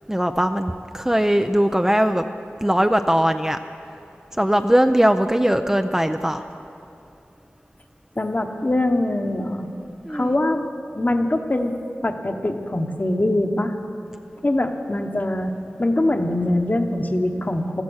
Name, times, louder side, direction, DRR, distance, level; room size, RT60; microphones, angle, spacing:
voice 1, 0.1-2.3 2.6-3.6 4.3-6.4 10.1-10.3, equal, 10° right, 7 dB, 0.5 m, -20 dB
voice 2, 8.2-9.7 10.1-10.6 10.9-11.8 12.0-13.7 14.4-15.5 15.8-17.8, left 1 dB, 40° left, 5 dB, 1.2 m, -23 dB
16.0 x 13.5 x 6.4 m, 2.9 s
wide cardioid pair, 65°, 5 cm